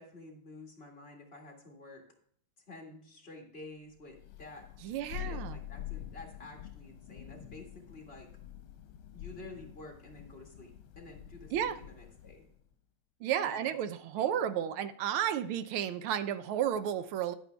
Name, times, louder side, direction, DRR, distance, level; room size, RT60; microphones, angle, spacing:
voice 1, 0.0-2.0 2.7-4.7 5.1-8.3 9.1-12.5 13.4-14.3, left 2 dB, 30° left, 0 dB, 1.9 m, -50 dB
Thunder, 4.1-12.5, left 12 dB, 80° left, 1.6 m, -46 dB
voice 2, 4.8-5.6 11.5-11.8 13.2-17.3, right 10 dB, 90° right, 12 dB, 1.6 m, -32 dB
10.5 x 9.0 x 3.3 m, 0.62 s
omnidirectional pair, 2.3 m